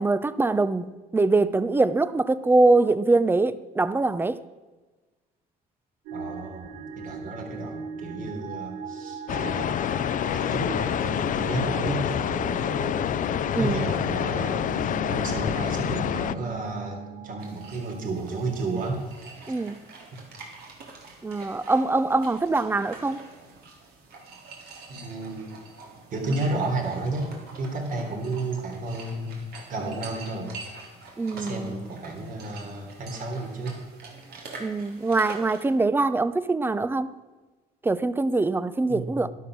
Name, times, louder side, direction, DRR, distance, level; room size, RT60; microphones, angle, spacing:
voice 1, 0.0-4.4 13.5-13.9 19.5-19.8 21.2-23.2 31.2-31.9 34.6-37.1 37.8-39.3, right 3 dB, 10° right, 0.6 m, -23 dB
voice 2, 6.1-9.7 10.3-13.1 13.6-19.0 20.1-20.2 24.9-25.5 26.1-27.3 27.5-30.5 31.3-33.8 38.9-39.3, right 2 dB, 55° right, 3.6 m, -32 dB
sound 1, 6.1-19.1, right 8 dB, 90° right, 1.3 m, -39 dB
sound 2, 9.3-16.3, left 10 dB, 50° left, 0.6 m, -27 dB
sound 3, 17.4-35.7, right 3 dB, 70° right, 3.7 m, -45 dB
12.0 x 12.0 x 6.2 m
cardioid pair, 110°, 17 cm